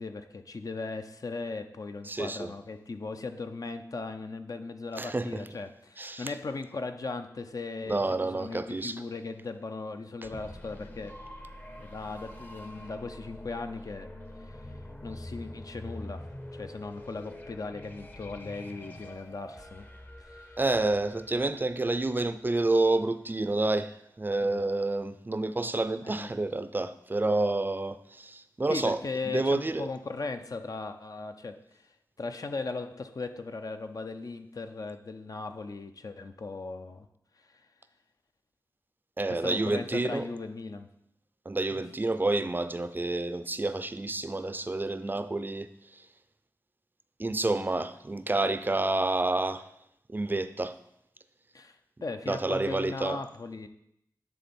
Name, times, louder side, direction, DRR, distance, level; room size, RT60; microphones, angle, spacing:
voice 1, 0.0-11.1 11.8-14.1 14.4-14.7 15.0-16.2 16.5-19.9 20.2-20.5 24.4-24.6 26.0-26.3 28.7-37.1 37.5-37.6 39.3-40.9 41.7-41.8 51.5-53.7, left 3 dB, 55° left, 7 dB, 0.6 m, -38 dB
voice 2, 2.1-2.5 5.0-5.4 6.0-6.3 7.9-8.9 20.6-29.0 29.3-29.9 39.2-40.3 41.5-45.7 47.2-49.6 50.1-50.7 52.3-53.2, right 2 dB, 30° right, 12 dB, 0.4 m, -29 dB
sound 1, 10.2-22.9, left 1 dB, 25° left, 0.8 m, -45 dB
9.8 x 3.8 x 4.3 m, 0.77 s
wide cardioid pair, 60°, 7 cm